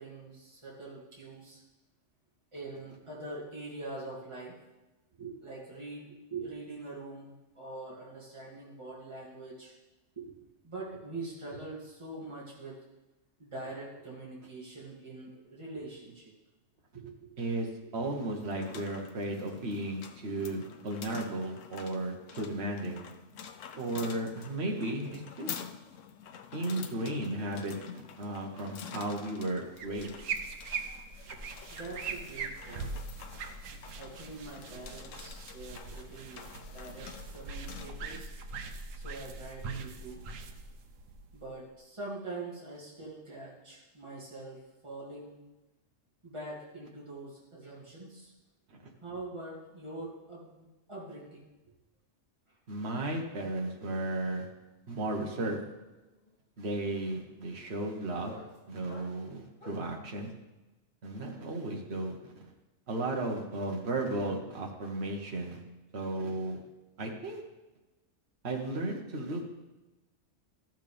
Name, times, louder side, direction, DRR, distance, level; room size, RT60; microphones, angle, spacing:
voice 1, 0.0-1.6 2.5-4.6 5.2-9.7 10.2-10.4 10.6-12.8 13.4-16.3 16.9-17.4 17.8-18.1 31.7-33.0 34.0-38.3 38.9-40.2 41.3-45.4 46.2-48.3 49.0-51.5 52.5-52.6, right 2 dB, 25° right, -7 dB, 2.5 m, -44 dB
voice 2, 17.4-17.7 17.9-23.0 23.7-25.5 26.5-27.7 28.2-30.1 52.7-54.5 54.9-55.6 56.6-58.4 58.7-60.3 61.0-62.3 62.9-65.6 65.9-66.6 67.0-67.4 68.4-69.6, right 2 dB, 55° right, 1 dB, 1.5 m, -34 dB
sound 1, 18.3-38.2, left 8 dB, 80° left, 1.0 m, -48 dB
sound 2, 29.7-41.7, right 4 dB, 90° right, 1.1 m, -41 dB
sound 3, 53.2-53.5 53.8-60.0, left 2 dB, 25° left, 3.3 m, -56 dB
14.0 x 6.6 x 3.4 m, 1.1 s
omnidirectional pair, 1.3 m